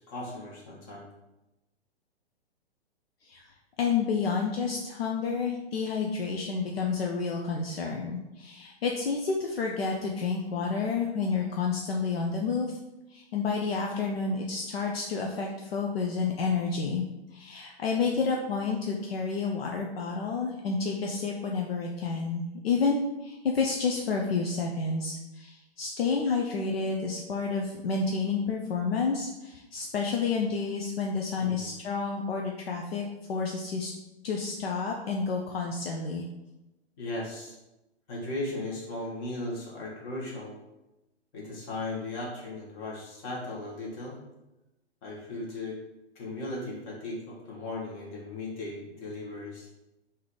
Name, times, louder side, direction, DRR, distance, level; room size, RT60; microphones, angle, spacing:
voice 1, 0.1-1.1 31.4-31.6 37.0-37.5 38.1-40.5 41.3-44.2 45.0-45.8 46.1-49.7, left 2 dB, 30° left, -4 dB, 1.6 m, -37 dB
voice 2, 3.2-12.8 13.1-17.1 17.3-33.9 34.2-36.3, left 4 dB, 60° left, 1 dB, 0.6 m, -30 dB
3.8 x 2.9 x 4.7 m, 0.98 s
figure-of-eight pair, 120°, 33 cm